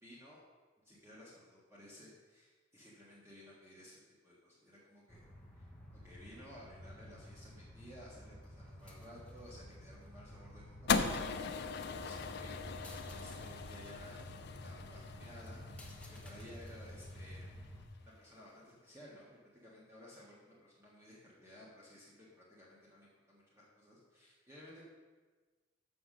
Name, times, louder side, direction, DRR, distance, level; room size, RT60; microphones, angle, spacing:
voice 1, 0.0-0.4 0.8-5.2 5.5-5.7 6.0-17.6 18.0-24.9, equal, 15° right, -7 dB, 1.6 m, -56 dB
sound 1, 5.1-17.9, equal, 5° left, 1.0 m, -51 dB
sound 2, 10.9-17.2, left 5 dB, 60° left, 0.5 m, -39 dB
6.8 x 5.8 x 6.5 m, 1.3 s
head